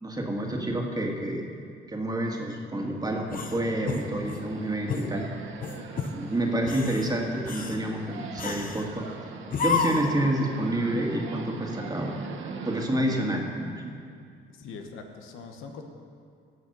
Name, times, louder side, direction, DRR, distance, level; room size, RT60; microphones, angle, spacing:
voice 1, 0.0-1.5 1.9-5.2 6.1-9.1 9.6-12.2 12.7-13.9, right 1 dB, 20° right, 0 dB, 1.8 m, -28 dB
sound 1, 3.3-4.5 4.9-5.1 5.6-6.2 6.6-7.1 7.5-7.8 8.4-8.9 9.5-10.2, left 4 dB, 45° left, 1.0 m, -30 dB
sound 2, 3.5-12.9, right 5 dB, 75° right, 1.1 m, -41 dB
voice 2, 14.5-15.8, left 4 dB, 90° left, 4 dB, 1.1 m, -42 dB
17.0 x 6.4 x 5.5 m, 2.3 s
cardioid pair, 90°, 20 cm